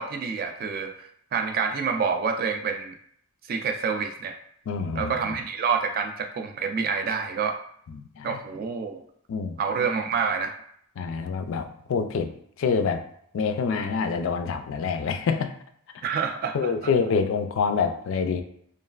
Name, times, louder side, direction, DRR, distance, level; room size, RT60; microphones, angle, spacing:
voice 1, 0.0-2.9 3.5-4.4 4.9-7.6 8.2-9.0 9.6-10.5 16.0-16.9, right 5 dB, 45° right, 5 dB, 0.3 m, -28 dB
voice 2, 4.7-5.1 7.9-8.4 9.3-9.5 11.0-12.3 12.6-13.0 13.3-15.5 16.5-18.4, left 5 dB, 65° left, 8 dB, 0.3 m, -26 dB
3.1 x 2.4 x 2.3 m, 0.67 s
head